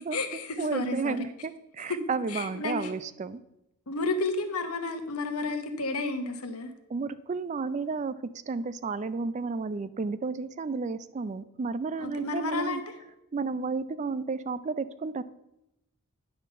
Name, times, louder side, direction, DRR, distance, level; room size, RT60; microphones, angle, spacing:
voice 1, 0.0-1.2 1.9-2.0 2.3-2.9 3.9-6.7 12.0-12.8, left 3 dB, 90° left, 7 dB, 1.0 m, -31 dB
voice 2, 0.6-3.4 6.9-12.8 13.3-15.2, right 4 dB, 30° right, 15 dB, 0.3 m, -32 dB
10.0 x 3.8 x 6.6 m, 0.86 s
head